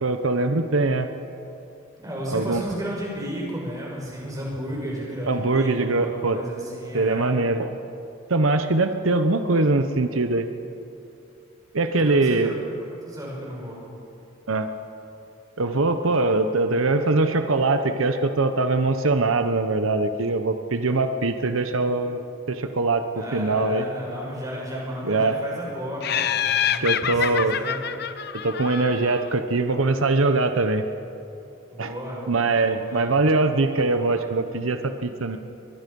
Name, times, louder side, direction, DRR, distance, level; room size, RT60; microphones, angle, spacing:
voice 1, 0.0-1.1 2.3-2.6 5.2-6.4 6.9-7.7 8.3-10.5 11.7-12.6 14.5-14.7 15.6-22.2 22.5-23.9 25.0-25.4 26.8-27.6 28.4-30.8 31.8-31.9 32.3-35.4, right 3 dB, 90° right, 8 dB, 1.0 m, -22 dB
voice 2, 2.0-7.3 12.0-12.6 12.9-13.8 23.1-27.8 31.7-33.3, equal, 15° right, -3 dB, 5.6 m, -33 dB
Laughter, 26.0-29.3, left 9 dB, 50° left, 0.7 m, -26 dB
24.0 x 20.5 x 5.4 m, 2.7 s
head